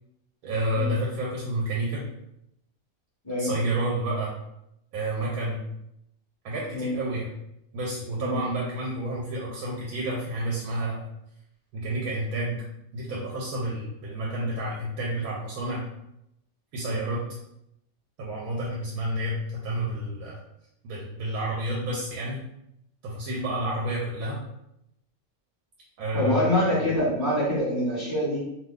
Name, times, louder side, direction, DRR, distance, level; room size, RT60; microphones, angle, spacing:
voice 1, 0.4-2.0 3.4-4.3 4.9-5.6 6.4-7.3 7.7-11.0 11.7-12.6 12.9-15.8 16.7-17.2 18.2-20.3 20.8-22.4 23.0-24.4 26.0-26.8, right 1 dB, 85° right, -4 dB, 1.1 m, -30 dB
voice 2, 26.1-28.4, left 1 dB, 20° left, -10 dB, 1.0 m, -25 dB
2.7 x 2.1 x 3.5 m, 0.81 s
omnidirectional pair, 1.5 m